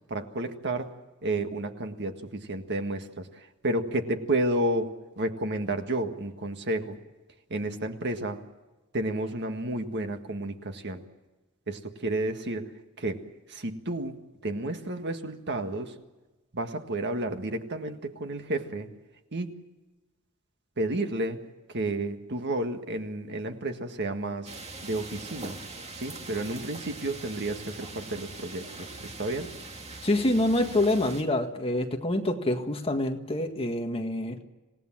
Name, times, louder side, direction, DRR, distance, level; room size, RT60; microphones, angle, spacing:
voice 1, 0.1-0.9 1.2-3.3 3.6-4.9 5.2-7.0 7.5-8.4 8.9-11.0 11.7-12.7 13.0-13.2 13.5-14.2 14.4-15.9 16.5-18.9 19.3-19.5 20.8-21.4 21.7-24.5 24.8-25.6 26.0-29.5, right 1 dB, 55° right, 6 dB, 1.8 m, -31 dB
sound 1, 24.4-31.2, right 3 dB, 30° right, 2.1 m, -42 dB
voice 2, 30.0-34.4, left 1 dB, 25° left, 4 dB, 1.8 m, -26 dB
27.0 x 18.0 x 7.5 m, 1.1 s
head